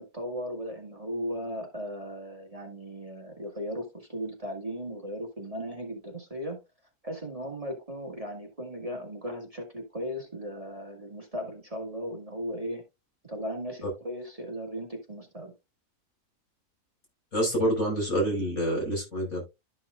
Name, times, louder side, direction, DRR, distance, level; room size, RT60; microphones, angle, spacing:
voice 1, 0.0-6.6 7.0-12.8 13.3-15.5, equal, 25° right, 1.8 m, -37 dB
voice 2, 17.3-19.4, equal, 70° left, 5.9 m, -27 dB
12.5 x 6.0 x 2.4 m
omnidirectional pair, 1.5 m